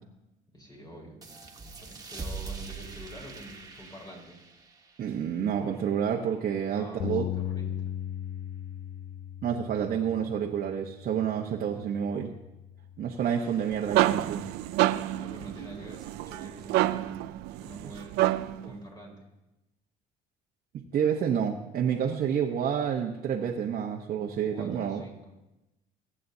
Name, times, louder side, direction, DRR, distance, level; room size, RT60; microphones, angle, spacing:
voice 1, 0.5-1.2 1.7-4.4 6.7-7.9 14.9-17.3 17.6-19.2 24.4-25.3, equal, 25° left, -1 dB, 4.5 m, -47 dB
sound 1, 1.2-6.4, right 4 dB, 25° right, 1.6 m, -43 dB
voice 2, 5.0-7.3 9.4-12.3 13.0-14.4 20.9-25.0, right 8 dB, 60° right, 0 dB, 1.0 m, -29 dB
Bass guitar, 7.0-13.2, left 11 dB, 70° left, 0.6 m, -38 dB
sound 2, 13.5-18.7, right 16 dB, 85° right, 0.4 m, -28 dB
23.5 x 8.5 x 2.8 m, 0.96 s
supercardioid pair, 85°, 16 cm